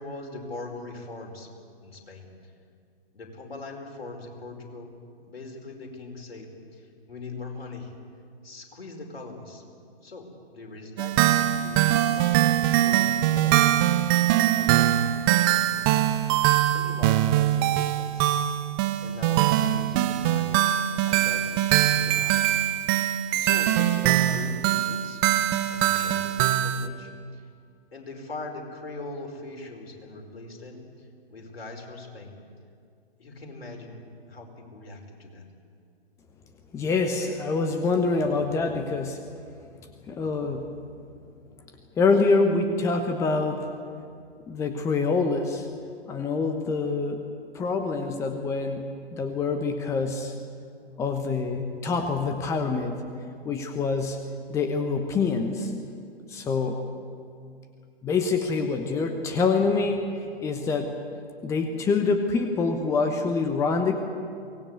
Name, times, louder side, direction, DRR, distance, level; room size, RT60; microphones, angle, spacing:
voice 1, 0.0-1.5 1.8-2.3 3.1-5.0 5.2-7.9 8.4-9.7 10.0-13.6 14.2-15.0 15.3-15.8 16.2-16.4 16.7-18.4 19.0-20.7 21.0-22.5 22.8-22.9 23.4-25.2 25.7-27.4 27.9-32.4 33.2-35.4, left 2 dB, 65° left, 2 dB, 5.2 m, -41 dB
sound 1, 11.0-26.9, right 12 dB, 20° right, 0.8 m, -22 dB
voice 2, 36.7-39.3 40.1-40.7 42.0-43.7 44.5-45.7 46.1-47.2 47.5-50.3 51.0-53.0 53.4-54.2 54.5-55.7 56.3-56.8 58.0-61.0 61.4-64.0, left 4 dB, 10° left, 6 dB, 1.0 m, -26 dB
24.0 x 19.0 x 8.3 m, 2.3 s
figure-of-eight pair, 125°, 32 cm